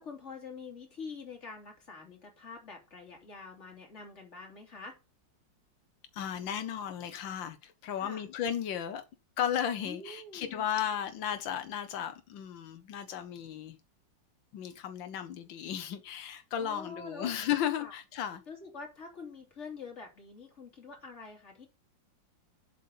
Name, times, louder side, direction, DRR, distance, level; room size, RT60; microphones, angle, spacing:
voice 1, 0.0-5.0 8.0-8.2 9.8-10.7 16.6-17.3 17.8-17.9 18.5-21.7, left 4 dB, 35° left, 3.1 m, -46 dB
voice 2, 6.1-9.0 9.4-13.8 14.5-18.4, left 9 dB, 85° left, 1.6 m, -35 dB
7.7 x 5.3 x 6.8 m
omnidirectional pair, 2.0 m